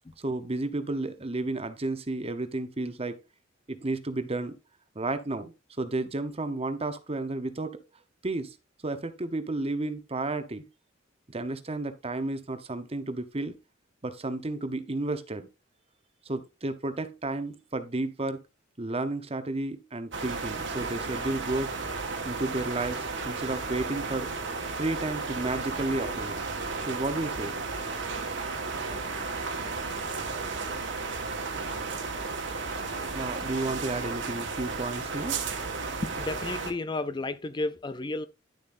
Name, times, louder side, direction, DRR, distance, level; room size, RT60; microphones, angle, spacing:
voice 1, 0.2-3.2 3.7-4.6 4.9-7.8 8.2-8.6 8.8-10.7 11.3-13.5 14.0-15.5 16.2-18.4 18.8-21.7 22.2-24.3 24.8-26.4 26.8-27.6 33.1-35.4, right 2 dB, 30° right, 0.9 m, -32 dB
sound 1, 20.1-36.7, right 4 dB, 65° right, 1.4 m, -33 dB
voice 2, 36.0-38.3, left 2 dB, 20° left, 0.4 m, -32 dB
11.0 x 7.1 x 2.6 m
head